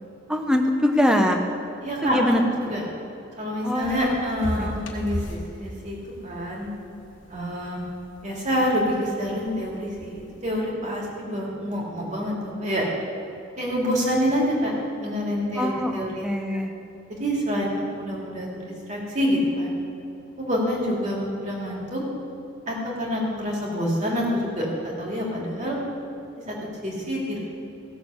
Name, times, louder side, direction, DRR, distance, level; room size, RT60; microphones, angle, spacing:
voice 1, 0.3-1.4 2.0-2.4 3.6-4.7 15.6-16.7, left 1 dB, 5° right, 4 dB, 0.9 m, -23 dB
voice 2, 1.8-2.8 3.4-6.0 6.2-6.7 7.3-7.8 8.2-12.9 13.6-14.7 15.0-16.3 17.2-19.7 20.4-22.0 22.7-25.8 26.5-27.4, equal, 35° right, -3 dB, 2.7 m, -27 dB
sound 1, 3.8-10.6, left 1 dB, 65° left, 1.3 m, -38 dB
15.5 x 6.8 x 7.0 m, 2.8 s
head